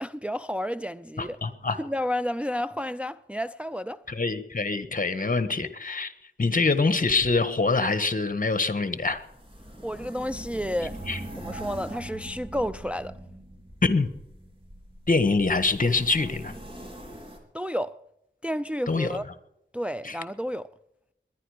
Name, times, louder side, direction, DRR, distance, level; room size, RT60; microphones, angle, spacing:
voice 1, 0.0-1.4 1.8-4.0 9.8-11.0 11.4-13.2 17.5-18.0 18.4-19.2 19.7-20.7, equal, 5° right, 0.4 m, -31 dB
voice 2, 1.2-1.8 4.1-6.1 6.4-9.2 11.1-11.2 13.8-14.1 15.1-16.5 18.9-19.1 20.0-20.1, left 3 dB, 45° left, 1.4 m, -24 dB
sound 1, 8.9-17.4, right 1 dB, 30° right, 3.7 m, -42 dB
21.5 x 10.5 x 5.0 m
wide cardioid pair, 65°, 19 cm